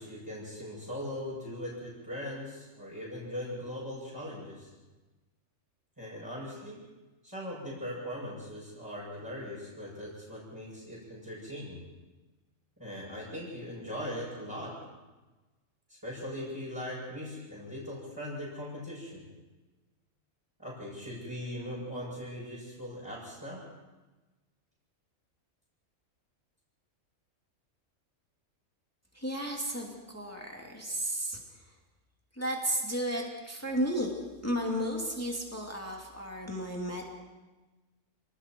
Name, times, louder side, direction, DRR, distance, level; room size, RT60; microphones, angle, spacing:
voice 1, 0.0-4.7 6.0-6.8 7.2-11.8 12.8-14.8 15.9-19.3 20.6-23.6, equal, 15° right, -10 dB, 8.0 m, -40 dB
voice 2, 29.1-31.4 32.4-37.0, equal, 10° left, -1 dB, 2.8 m, -33 dB
29.5 x 20.5 x 4.7 m, 1.2 s
omnidirectional pair, 1.4 m